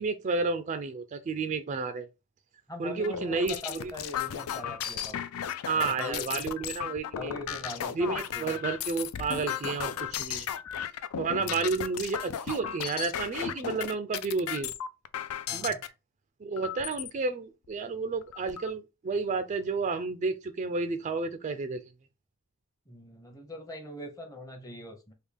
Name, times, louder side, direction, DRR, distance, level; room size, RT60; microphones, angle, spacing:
voice 1, 0.0-2.1 2.8-3.9 5.6-7.3 7.9-10.5 11.2-14.7 15.5-15.8 16.4-21.8, right 4 dB, 35° right, 0.3 m, -31 dB
voice 2, 2.7-5.5 5.9-6.5 7.2-8.6 11.4-11.7 15.5-15.7 22.9-25.1, left 1 dB, 15° left, 0.7 m, -42 dB
sound 1, 3.0-15.9 16.6-17.1 17.7-17.8 18.1-18.7, left 9 dB, 90° left, 0.4 m, -35 dB
3.5 x 2.3 x 3.3 m
head